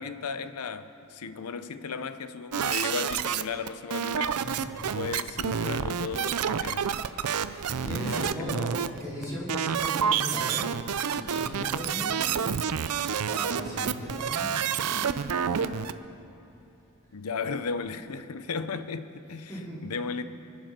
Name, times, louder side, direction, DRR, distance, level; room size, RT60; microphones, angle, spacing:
voice 1, 0.0-4.4 4.9-7.1 7.8-8.9 9.2-9.4 17.1-19.5 19.8-20.2, left 5 dB, 85° left, 0.7 m, -35 dB
sound 1, 2.5-15.9, right 7 dB, 90° right, 0.5 m, -29 dB
voice 2, 4.3-4.7 7.5-10.7 11.1-12.4 13.3-14.5 14.9-15.8 19.5-19.9, equal, 15° left, 4.6 m, -37 dB
25.0 x 8.3 x 6.0 m
head